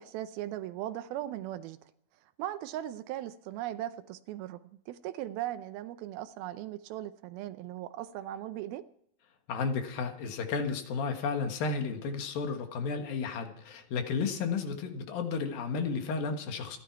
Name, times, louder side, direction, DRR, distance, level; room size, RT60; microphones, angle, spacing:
voice 1, 0.0-1.8 2.4-4.6 4.9-8.8, right 13 dB, 90° right, 10 dB, 2.6 m, -38 dB
voice 2, 9.5-16.8, left 5 dB, 75° left, 5 dB, 3.3 m, -33 dB
27.5 x 10.5 x 4.6 m, 0.69 s
omnidirectional pair, 4.2 m